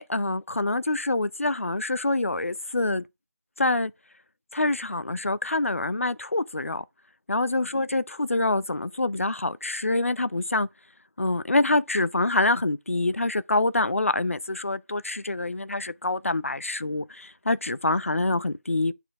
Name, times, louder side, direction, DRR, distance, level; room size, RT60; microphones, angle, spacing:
voice 1, 0.0-3.1 3.6-3.9 4.5-6.8 7.3-10.7 11.2-18.9, left 2 dB, 55° left, 0.6 m, -26 dB
9.1 x 4.5 x 3.5 m
figure-of-eight pair, 175°, 9 cm